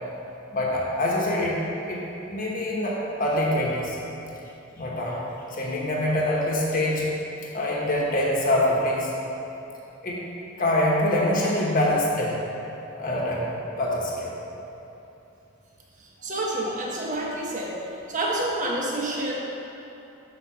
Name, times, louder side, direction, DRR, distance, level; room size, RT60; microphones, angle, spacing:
voice 1, 0.5-1.6 1.8-2.0 2.3-4.0 4.8-5.2 5.5-7.1 7.5-9.1 10.0-10.2 10.6-12.3 12.9-13.5 13.8-14.3, left 1 dB, 45° left, -4 dB, 1.2 m, -24 dB
voice 2, 16.0-17.8 18.1-19.3, right 1 dB, 40° right, -3 dB, 1.2 m, -28 dB
6.6 x 4.9 x 5.7 m, 3.0 s
head